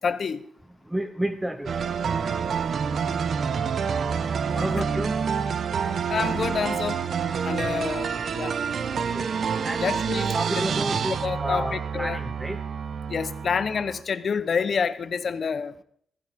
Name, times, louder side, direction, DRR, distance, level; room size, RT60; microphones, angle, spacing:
voice 1, 0.0-0.4 6.1-7.0 7.4-8.6 9.8-10.3 11.2-12.2 13.1-15.8, left 6 dB, 55° left, 14 dB, 0.8 m, -28 dB
voice 2, 0.9-1.7 4.5-5.2 8.9-9.2 9.6-9.9 10.3-12.6, right 1 dB, 10° right, 10 dB, 0.7 m, -31 dB
sound 1, 1.7-14.0, right 6 dB, 60° right, 0.8 m, -28 dB
15.5 x 15.0 x 3.6 m, 0.64 s
cardioid pair, 80°, 0 cm